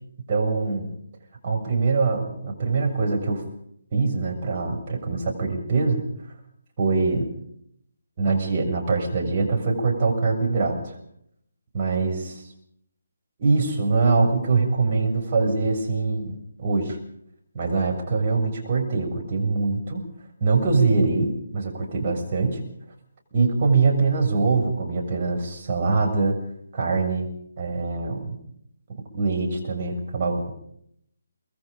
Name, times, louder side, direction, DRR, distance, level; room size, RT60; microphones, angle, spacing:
voice 1, 0.3-0.9 1.4-3.4 3.9-6.0 6.8-7.3 8.2-11.0 11.7-12.4 13.4-17.0 17.5-20.0 20.4-22.6 23.3-26.4 26.7-27.3 27.6-28.4 29.1-30.5, right 4 dB, 35° right, 0 dB, 7.0 m, -23 dB
25.0 x 22.5 x 5.2 m, 0.70 s
figure-of-eight pair, 145°, 0 cm